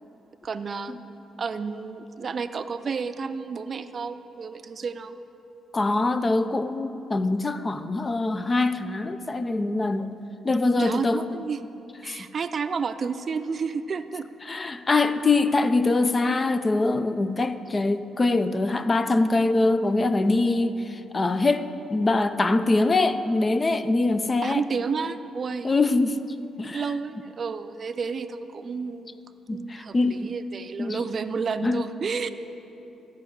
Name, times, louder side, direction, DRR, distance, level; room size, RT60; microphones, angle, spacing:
voice 1, 0.4-1.0 1.4-5.2 10.8-11.6 12.0-14.3 24.4-25.7 26.7-29.2 29.5-32.3, right 5 dB, 45° right, 10 dB, 0.5 m, -31 dB
voice 2, 5.7-10.1 10.4-11.2 12.1-12.2 14.5-24.6 25.6-26.2 26.6-26.8 29.5-30.3 30.8-31.0 31.6-31.8, left 2 dB, 30° left, 11 dB, 0.6 m, -23 dB
13.5 x 5.3 x 9.4 m, 2.9 s
cardioid pair, 90°, 0 cm